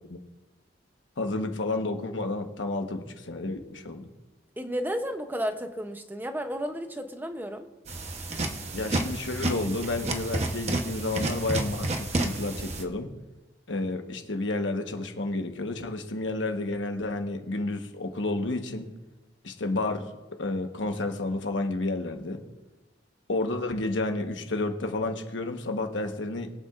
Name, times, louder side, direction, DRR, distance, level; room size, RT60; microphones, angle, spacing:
voice 1, 1.2-4.1 8.7-13.1 13.7-18.9 19.4-20.1 20.4-22.4 23.3-26.5, left 2 dB, 85° left, 5 dB, 1.2 m, -31 dB
voice 2, 4.6-7.7, equal, 10° right, 7 dB, 0.7 m, -32 dB
sound 1, 7.9-12.8, right 2 dB, 35° right, 1.0 m, -30 dB
22.0 x 8.5 x 2.5 m, 1.1 s
head